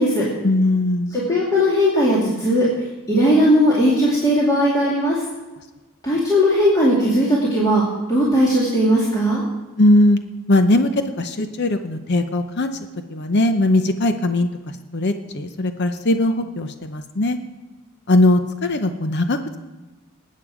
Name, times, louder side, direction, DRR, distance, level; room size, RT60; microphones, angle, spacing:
voice 1, 0.4-1.2 9.8-10.2 10.5-12.7 13.1-14.5 14.9-17.4 18.1-19.6, left 1 dB, 55° left, 8 dB, 0.7 m, -19 dB
voice 2, 1.1-2.7 3.1-5.2 6.0-7.8 8.1-9.4, equal, 15° left, -7 dB, 2.4 m, -17 dB
20.0 x 8.6 x 4.9 m, 1.2 s
head